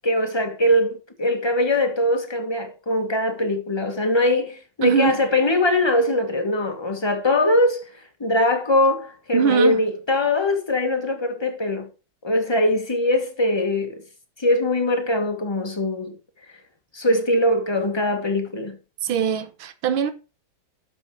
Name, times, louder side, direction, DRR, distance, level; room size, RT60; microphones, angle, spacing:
voice 1, 0.0-7.8 8.2-11.9 12.2-14.0 14.4-16.2 16.9-18.8, left 1 dB, 15° left, 1.5 m, -22 dB
voice 2, 4.8-5.2 9.3-9.8 19.0-20.1, right 7 dB, 85° right, 1.9 m, -21 dB
11.5 x 6.2 x 4.9 m
omnidirectional pair, 2.2 m